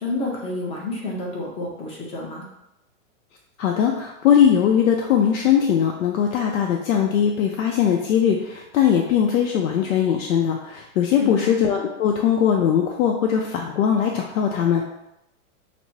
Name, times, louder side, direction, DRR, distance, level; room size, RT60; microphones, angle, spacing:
voice 1, 0.0-2.4 11.2-11.5, left 2 dB, 15° left, -2 dB, 0.5 m, -29 dB
voice 2, 3.6-14.8, left 8 dB, 80° left, 1 dB, 0.6 m, -20 dB
5.9 x 2.0 x 2.7 m, 0.88 s
supercardioid pair, 150°, 41 cm